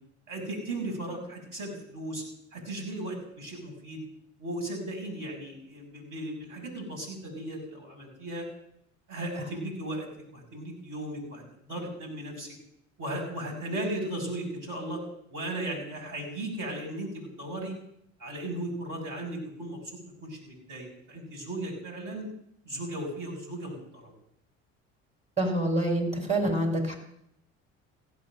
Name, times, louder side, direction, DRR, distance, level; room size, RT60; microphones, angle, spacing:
voice 1, 0.3-2.2 2.5-4.0 4.4-8.5 9.1-11.4 11.7-12.5 13.0-15.0 15.3-17.8 18.2-19.8 20.2-22.3 22.6-24.1, right 1 dB, 50° right, 1 dB, 6.5 m, -36 dB
voice 2, 25.4-27.0, right 1 dB, 15° right, 1 dB, 5.7 m, -26 dB
16.0 x 8.6 x 7.7 m, 0.73 s
hypercardioid pair, 60°, 39 cm